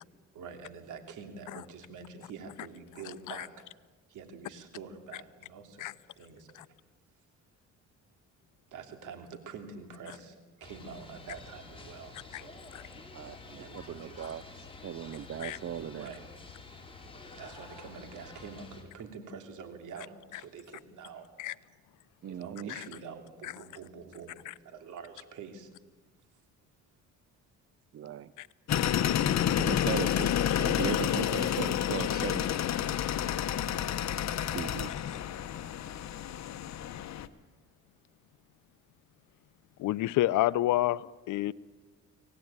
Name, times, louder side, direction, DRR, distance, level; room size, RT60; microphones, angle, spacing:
voice 1, 0.3-3.6 4.1-6.7 8.7-12.6 13.6-14.4 15.9-16.9 17.3-21.3 22.3-24.4 24.6-25.7 26.3-26.4, right 5 dB, 80° right, 3.0 m, -46 dB
sound 1, 10.6-18.8, left 3 dB, 15° left, 4.2 m, -49 dB
voice 2, 13.1-14.4 14.8-16.1 22.2-22.7 27.9-28.3 29.6-30.3 30.6-32.6 34.4-34.9, right 10 dB, 50° right, 0.7 m, -38 dB
sound 2, 28.7-37.3, left 10 dB, 60° left, 1.1 m, -29 dB
voice 3, 39.8-41.5, left 15 dB, 80° left, 0.7 m, -29 dB
24.5 x 18.0 x 8.9 m
cardioid pair, 90°, 30 cm